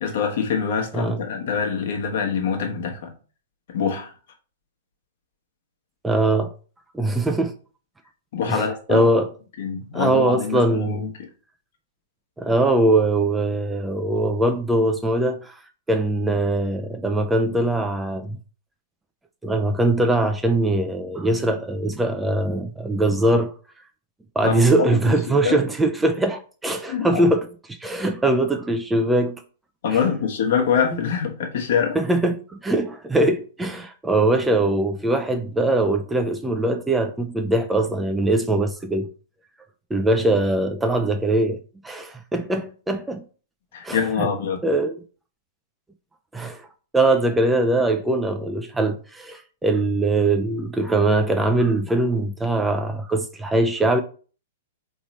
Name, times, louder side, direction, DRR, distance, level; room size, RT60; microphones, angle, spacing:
voice 1, 0.0-3.1 3.7-4.1 8.3-9.1 9.6-11.1 24.4-25.2 25.4-25.6 26.9-27.2 29.8-32.0 43.7-44.6, left 6 dB, 55° left, 1.2 m, -24 dB
voice 2, 6.0-6.5 6.9-7.5 8.5-9.3 9.9-11.1 12.4-15.6 15.9-18.4 19.4-23.5 24.4-29.4 29.9-30.0 30.9-31.0 31.9-39.1 39.9-41.6 41.8-43.2 43.8-44.3 44.6-45.0 46.3-46.7 46.9-54.0, right 2 dB, 5° right, 0.4 m, -22 dB
4.0 x 3.0 x 4.1 m
figure-of-eight pair, 105°, 0 cm